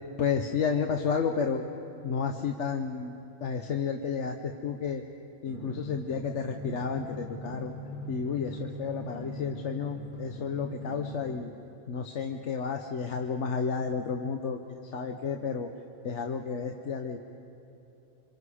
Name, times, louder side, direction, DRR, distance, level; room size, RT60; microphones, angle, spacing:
voice 1, 0.2-1.6 2.0-3.1 3.4-5.0 5.4-7.7 8.1-11.5 11.9-15.7 16.0-17.2, left 6 dB, 60° left, 4 dB, 1.1 m, -31 dB
Drum, 5.5-11.5, equal, 40° left, 1.6 m, -40 dB
27.0 x 25.5 x 4.9 m, 2.8 s
omnidirectional pair, 1.4 m